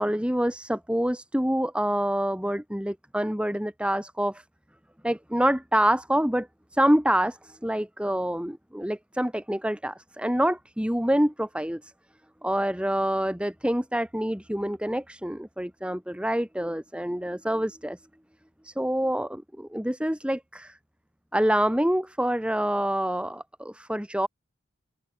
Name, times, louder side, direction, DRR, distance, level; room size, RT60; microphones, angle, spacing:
voice 1, 0.0-4.4 5.0-6.5 6.7-11.9 12.4-18.0 18.6-20.8 21.3-24.3, right 1 dB, 5° right, 3.0 m, -26 dB
open air
head